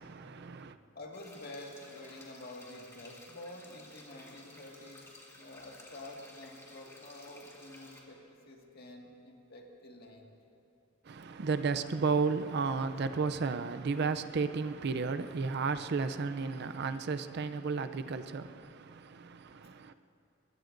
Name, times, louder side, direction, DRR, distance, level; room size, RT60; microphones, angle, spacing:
voice 1, 0.0-0.8 11.1-19.9, right 4 dB, 55° right, 0.5 m, -33 dB
voice 2, 1.0-10.4, left 1 dB, 55° left, 1.9 m, -49 dB
sound 1, 1.1-8.0, left 1 dB, 15° left, 2.1 m, -55 dB
23.5 x 21.0 x 2.6 m
head